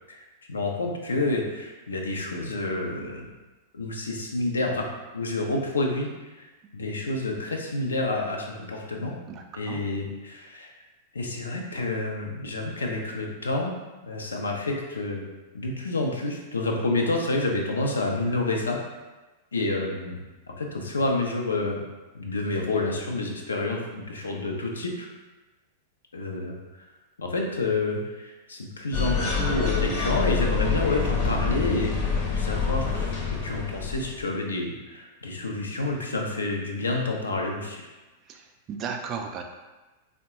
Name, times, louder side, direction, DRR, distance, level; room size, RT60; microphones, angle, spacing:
voice 1, 0.5-3.3 3.7-4.9 5.1-6.1 6.4-6.5 6.7-9.1 9.5-10.7 11.1-13.7 14.0-15.2 15.5-18.8 19.5-20.2 20.6-21.8 22.1-25.1 26.1-26.5 27.2-37.9, left 2 dB, 75° left, 1 dB, 0.5 m, -29 dB
voice 2, 9.3-9.8 38.7-39.4, right 6 dB, 35° right, 4 dB, 0.3 m, -34 dB
sound 1, 28.9-34.3, left 5 dB, 40° left, 0.7 m, -26 dB
3.5 x 2.1 x 2.9 m, 1.2 s
figure-of-eight pair, 95°, 0 cm